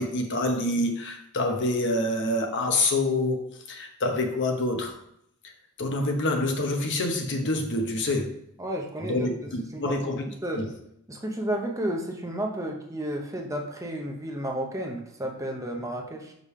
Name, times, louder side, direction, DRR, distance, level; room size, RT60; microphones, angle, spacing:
voice 1, 0.0-3.4 3.7-4.9 5.8-8.4 9.1-10.3 10.6-10.7, left 2 dB, 55° left, 3 dB, 0.9 m, -26 dB
voice 2, 8.6-9.3 9.7-10.1 10.4-10.6 11.1-16.3, right 1 dB, 15° right, 1 dB, 0.7 m, -32 dB
5.2 x 3.3 x 5.5 m, 0.74 s
head